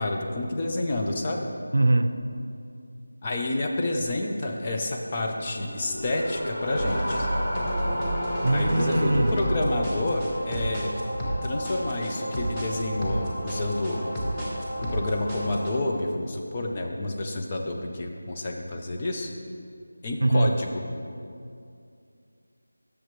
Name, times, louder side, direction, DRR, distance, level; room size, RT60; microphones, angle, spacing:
voice 1, 0.0-1.5 3.2-7.3 8.5-10.9 11.4-14.1 14.8-19.3 20.0-20.8, left 2 dB, 20° left, 1 dB, 0.5 m, -29 dB
voice 2, 1.7-2.2 8.4-9.3 20.2-20.6, right 2 dB, 80° right, 10 dB, 0.6 m, -22 dB
sound 1, 5.1-10.3, equal, 40° left, 1.9 m, -33 dB
sound 2, 6.7-15.7, equal, 5° left, 0.9 m, -30 dB
11.5 x 6.7 x 3.1 m, 2.4 s
figure-of-eight pair, 175°, 0 cm